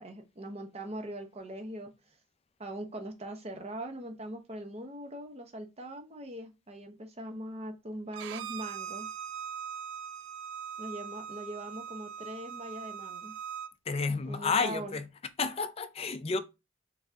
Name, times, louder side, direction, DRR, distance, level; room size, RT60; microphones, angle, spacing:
voice 1, 0.0-1.9 2.6-9.1 10.8-13.3 14.3-14.9, right 1 dB, 30° right, 0.8 m, -41 dB
Bowed string instrument, 8.1-13.7, right 8 dB, 60° right, 0.3 m, -41 dB
voice 2, 13.8-15.1 15.4-16.4, left 4 dB, 30° left, 0.4 m, -31 dB
4.1 x 3.4 x 3.5 m
head